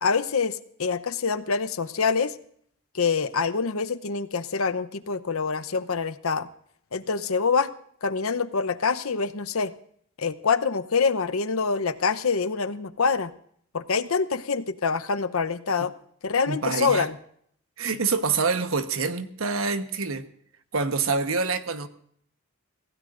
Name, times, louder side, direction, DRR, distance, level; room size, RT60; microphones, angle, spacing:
voice 1, 0.0-2.3 2.9-6.5 6.9-7.7 8.0-9.7 10.2-13.3 13.7-15.9 16.2-17.2, left 5 dB, 80° left, 12 dB, 0.8 m, -25 dB
voice 2, 16.5-17.1 17.8-20.3 20.7-21.9, right 4 dB, 75° right, 9 dB, 1.2 m, -26 dB
25.5 x 16.0 x 2.6 m, 0.65 s
head